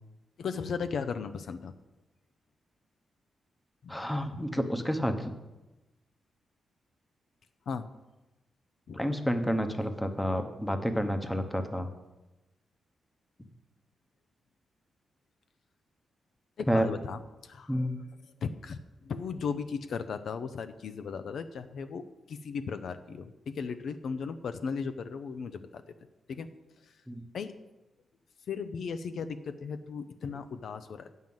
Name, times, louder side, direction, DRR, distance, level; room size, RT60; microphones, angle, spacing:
voice 1, 0.4-1.7 3.8-4.0 7.7-7.9 8.9-9.0 16.6-17.9 18.4-25.8 26.3-26.5 26.8-26.9 27.3-27.5 28.5-31.1, left 5 dB, 65° left, 10 dB, 0.5 m, -36 dB
voice 2, 3.9-5.3 8.9-11.9 16.7-16.9 17.7-18.0 27.1-27.2, equal, 5° left, 7 dB, 0.8 m, -29 dB
8.8 x 5.5 x 7.7 m, 1.0 s
wide cardioid pair, 130°, 0 cm